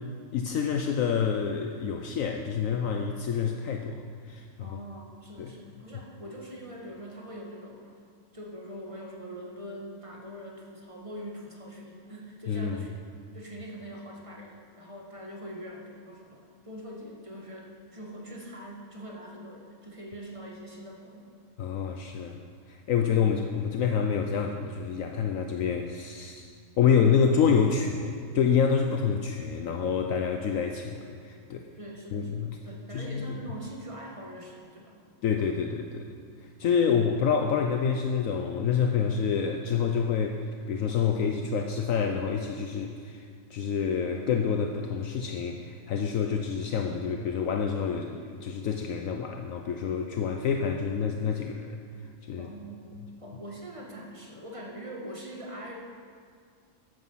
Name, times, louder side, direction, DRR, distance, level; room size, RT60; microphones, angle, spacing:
voice 1, 0.3-4.8 5.4-5.5 12.5-12.9 21.6-22.4 22.7-26.5 26.8-31.7 32.1-32.6 32.9-33.4 35.2-36.1 36.4-51.8 52.3-52.5, left 6 dB, 70° left, 4 dB, 1.1 m, -27 dB
voice 2, 4.6-7.9 8.3-12.9 13.3-21.3 31.8-35.0 36.6-37.1 52.4-55.7, equal, 20° right, -1 dB, 1.9 m, -43 dB
13.5 x 10.0 x 5.6 m, 2.1 s
omnidirectional pair, 1.5 m